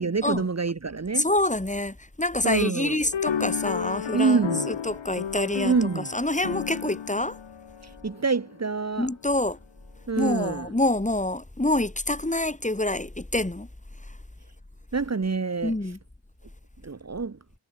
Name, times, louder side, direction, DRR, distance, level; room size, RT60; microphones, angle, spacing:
voice 1, 0.0-1.3 2.4-3.0 4.1-4.7 5.6-6.1 7.8-9.1 10.1-10.7 14.9-15.7 16.8-17.4, right 4 dB, 35° right, 2.0 m, -26 dB
voice 2, 1.2-7.4 9.0-9.6 10.2-13.7 14.1-14.2 15.6-16.0, left 1 dB, 15° left, 6.8 m, -27 dB
sound 1, 3.1-8.7, left 8 dB, 85° left, 4.8 m, -33 dB
cardioid pair, 65°, 44 cm